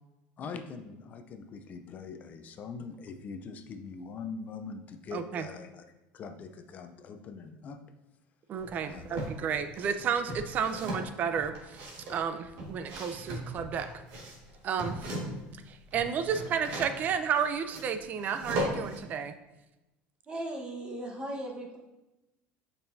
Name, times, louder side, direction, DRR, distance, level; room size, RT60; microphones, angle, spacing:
voice 1, 0.4-5.8 6.1-7.8 8.8-9.9 16.4-16.5, left 5 dB, 40° left, 8 dB, 0.5 m, -43 dB
voice 2, 5.1-5.4 8.5-11.8 12.1-13.9 14.6-15.2 15.7-19.3, right 7 dB, 40° right, 10 dB, 0.5 m, -32 dB
sound 1, 8.6-9.4 9.8-15.5 15.8-19.0, right 1 dB, 65° right, 1.6 m, -38 dB
voice 3, 20.3-21.8, right 1 dB, 25° right, 0 dB, 1.1 m, -37 dB
6.9 x 5.4 x 2.6 m, 1.0 s
supercardioid pair, 125°, 4 cm